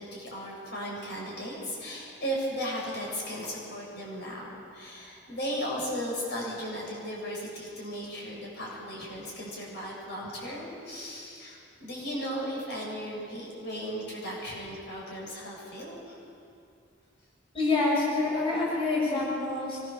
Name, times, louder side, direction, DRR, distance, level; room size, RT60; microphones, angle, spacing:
voice 1, 0.0-16.2, equal, 65° left, -3 dB, 7.8 m, -36 dB
voice 2, 17.5-19.8, left 3 dB, 30° left, -5 dB, 7.0 m, -27 dB
25.0 x 22.5 x 7.3 m, 2.4 s
head